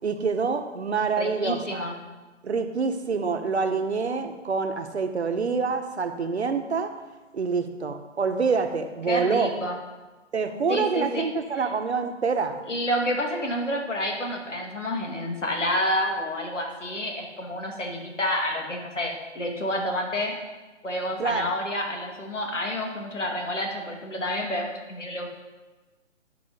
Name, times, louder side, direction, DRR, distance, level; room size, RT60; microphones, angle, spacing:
voice 1, 0.0-1.8 2.4-6.9 7.3-9.5 10.3-12.6 21.2-21.5, right 5 dB, 60° right, 6 dB, 1.1 m, -26 dB
voice 2, 1.2-2.0 9.1-9.8 10.7-11.3 11.5-11.7 12.7-20.4 20.8-25.3, left 1 dB, 75° left, 2 dB, 2.5 m, -29 dB
12.0 x 5.1 x 5.4 m, 1.2 s
figure-of-eight pair, 145°, 37 cm